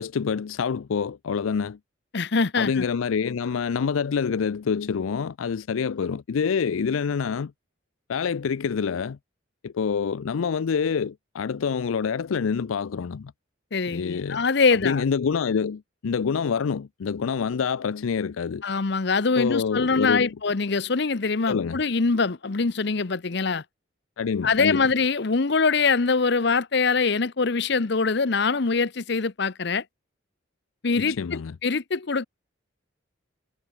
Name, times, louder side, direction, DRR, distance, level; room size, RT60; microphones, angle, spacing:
voice 1, 0.0-1.8 2.6-7.5 8.1-9.2 9.6-13.3 13.9-14.4 14.8-18.6 19.4-20.3 21.5-21.8 24.2-24.8 31.0-31.5, left 6 dB, 90° left, 0.4 m, -26 dB
voice 2, 2.1-2.8 13.7-15.0 18.6-23.6 24.4-29.8 30.8-32.2, left 4 dB, 55° left, 0.8 m, -23 dB
head